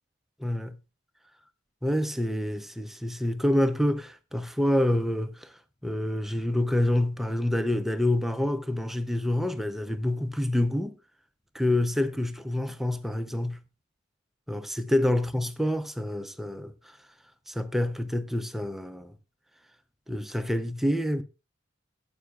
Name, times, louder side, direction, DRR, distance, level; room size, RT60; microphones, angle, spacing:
voice 1, 0.4-0.8 1.8-5.5 5.8-11.0 11.5-13.6 14.5-16.7 17.5-19.1 20.1-21.2, left 1 dB, ahead, 0.5 m, -27 dB
14.5 x 8.3 x 2.3 m
head